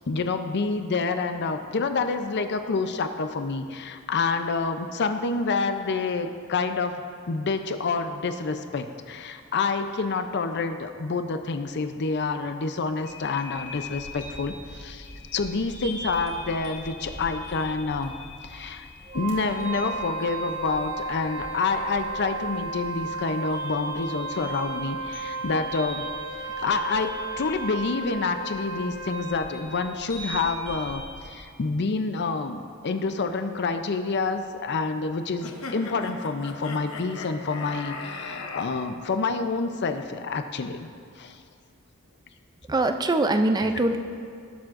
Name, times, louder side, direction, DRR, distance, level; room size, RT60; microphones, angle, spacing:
voice 1, 0.0-6.9 7.3-18.1 18.4-18.9 19.1-26.0 26.6-40.9 41.2-41.4, left 4 dB, 55° left, 8 dB, 0.5 m, -28 dB
sound 1, 13.0-31.4, equal, 30° left, 2.0 m, -42 dB
Wind instrument woodwind instrument, 19.0-29.6, right 3 dB, 50° right, 2.7 m, -34 dB
sound 2, 35.4-38.7, left 3 dB, 70° left, 0.9 m, -38 dB
voice 2, 42.7-44.0, right 2 dB, 20° right, 7 dB, 0.4 m, -22 dB
17.5 x 7.3 x 2.5 m, 2.3 s
head